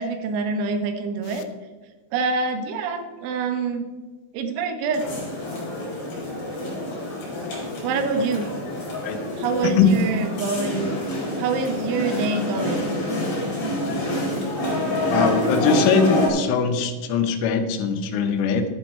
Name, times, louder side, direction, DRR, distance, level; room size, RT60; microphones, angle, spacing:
voice 1, 0.0-1.4 2.1-3.9 4.3-5.0 7.8-8.5 9.4-11.0 11.4-12.9, right 4 dB, 80° right, 6 dB, 3.5 m, -25 dB
sound 1, 4.9-16.3, left 1 dB, 50° left, 5.8 m, -27 dB
voice 2, 15.1-18.7, left 6 dB, 90° left, 7 dB, 3.6 m, -22 dB
11.5 x 9.1 x 4.3 m, 1.4 s
omnidirectional pair, 5.5 m